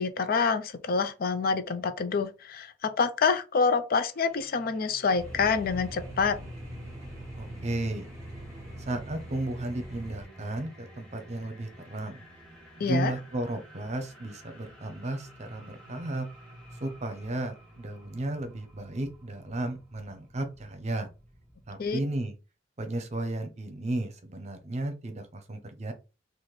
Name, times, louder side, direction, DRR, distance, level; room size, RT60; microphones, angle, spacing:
voice 1, 0.0-6.4 12.8-13.1 21.8-22.0, left 5 dB, 50° left, 0.4 m, -27 dB
sound 1, 4.1-22.0, equal, 5° left, 1.5 m, -50 dB
sound 2, 5.2-10.3, right 1 dB, 20° right, 1.3 m, -43 dB
voice 2, 7.4-8.1 8.8-12.2 12.8-16.3 16.8-21.1 21.7-22.3 22.8-25.9, right 1 dB, 40° right, 0.8 m, -34 dB
4.1 x 2.5 x 3.2 m
head